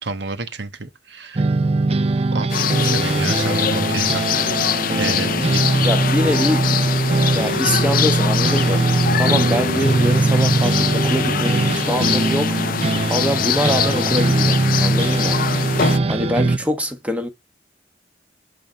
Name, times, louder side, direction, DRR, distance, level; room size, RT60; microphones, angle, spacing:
voice 1, 0.0-1.5 2.3-4.3 5.0-5.9, right 3 dB, 75° right, 1.3 m, -30 dB
sound 1, 1.4-16.6, right 3 dB, 35° right, 0.5 m, -20 dB
sound 2, 2.5-16.0, left 8 dB, 50° left, 0.5 m, -23 dB
voice 2, 5.8-6.7 7.3-12.6 13.1-15.4 16.1-17.3, equal, 10° right, 1.3 m, -24 dB
9.1 x 4.0 x 6.6 m
head